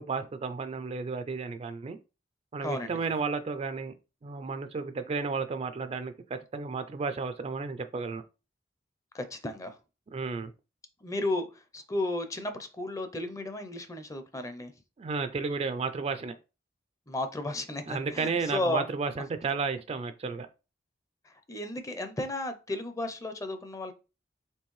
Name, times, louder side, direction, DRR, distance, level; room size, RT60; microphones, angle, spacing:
voice 1, 0.0-2.0 2.5-3.9 4.2-8.2 10.1-10.5 15.0-16.4 17.9-20.5, right 4 dB, 35° right, 0.3 m, -33 dB
voice 2, 2.6-3.0 9.1-9.8 11.0-14.7 17.1-18.9 21.3-23.9, left 1 dB, 20° left, 0.5 m, -34 dB
4.4 x 3.1 x 3.1 m
head